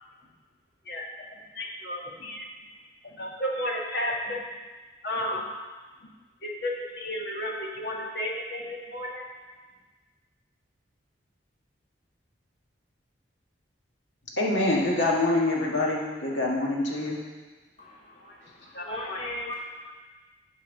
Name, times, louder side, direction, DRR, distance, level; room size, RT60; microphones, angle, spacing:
voice 1, 0.8-2.5 3.0-4.4 5.0-5.4 6.0-6.1 6.4-9.2 18.2-18.4 18.7-19.2, left 1 dB, 55° left, -1 dB, 1.5 m, -33 dB
voice 2, 14.4-17.2, left 2 dB, 75° left, -3 dB, 1.9 m, -25 dB
voice 3, 17.8-19.9, left 1 dB, 30° left, -2 dB, 0.8 m, -38 dB
9.2 x 4.8 x 7.1 m, 1.3 s
head